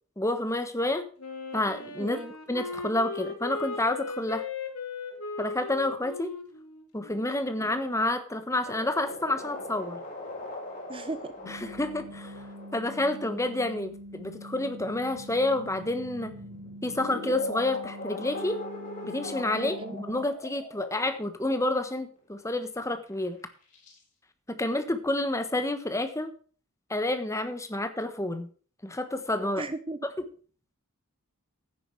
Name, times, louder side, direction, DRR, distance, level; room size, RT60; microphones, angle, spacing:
voice 1, 0.2-1.0 1.5-2.2 2.5-4.4 5.4-6.3 6.9-10.0 11.5-12.4 12.7-16.3 16.8-18.6 19.0-23.4 24.5-26.3 26.9-28.5 28.8-29.6, left 1 dB, 15° left, 9 dB, 1.2 m, -29 dB
Wind instrument woodwind instrument, 1.2-8.0, left 4 dB, 70° left, 2.8 m, -38 dB
voice 2, 2.0-2.3 10.9-11.3 11.6-11.7 19.5-20.0 29.6-30.0, right 2 dB, 25° right, 11 dB, 0.6 m, -36 dB
sound 1, 8.6-21.6 22.3-22.4 22.8-23.3 23.7-24.0, left 2 dB, 35° left, 4.6 m, -40 dB
sound 2, 11.4-20.3, equal, 80° right, 0.8 m, -44 dB
10.0 x 9.8 x 4.7 m, 0.40 s
head